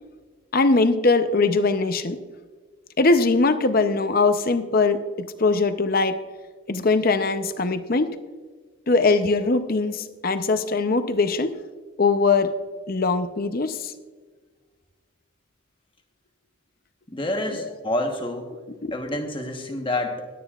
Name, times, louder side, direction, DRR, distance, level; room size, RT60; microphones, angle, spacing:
voice 1, 0.5-2.2 3.0-6.2 6.7-8.1 8.9-11.5 12.0-12.5 12.9-13.9 17.5-17.7 18.8-18.9, left 3 dB, 45° left, 10 dB, 0.6 m, -21 dB
voice 2, 17.1-18.6 18.9-20.3, left 1 dB, 25° left, 3 dB, 1.1 m, -28 dB
21.0 x 9.4 x 2.4 m, 1.4 s
head